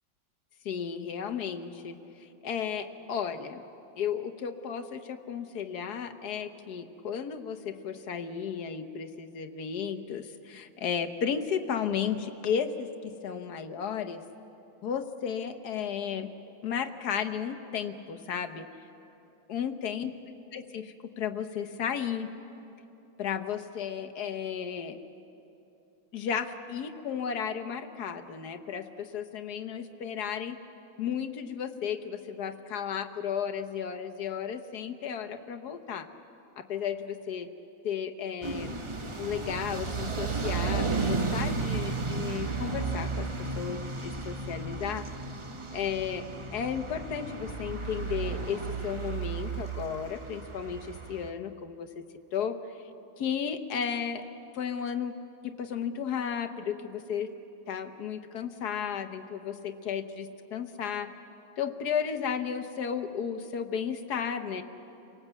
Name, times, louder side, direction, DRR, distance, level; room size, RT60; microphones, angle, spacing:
voice 1, 0.6-3.6 4.0-14.2 14.8-16.3 16.6-18.7 19.5-20.1 20.5-22.3 23.2-25.0 26.1-30.6 31.0-36.1 36.6-37.5 37.8-38.8 39.2-43.3 43.6-45.0 45.7-46.3 46.5-51.9 52.3-52.8 53.2-54.2 54.5-55.1 55.4-57.3 57.7-61.1 61.6-64.6, left 7 dB, 55° left, 8 dB, 1.4 m, -34 dB
sound 1, 38.4-51.3, right 4 dB, 30° right, 0.6 m, -33 dB
28.5 x 18.5 x 8.2 m, 2.9 s
omnidirectional pair, 2.2 m